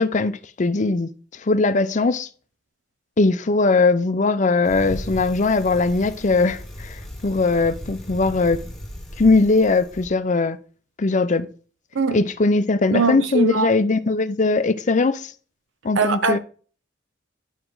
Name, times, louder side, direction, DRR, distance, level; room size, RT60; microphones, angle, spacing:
voice 1, 0.0-2.3 3.2-8.6 9.2-10.6 11.0-11.5 12.1-15.3 15.8-16.4, left 3 dB, 40° left, 0.6 m, -20 dB
Bicycle, 4.6-10.1, equal, ahead, 1.9 m, -36 dB
voice 2, 12.9-13.7 16.0-16.4, right 4 dB, 80° right, 0.7 m, -21 dB
10.0 x 4.9 x 3.9 m
head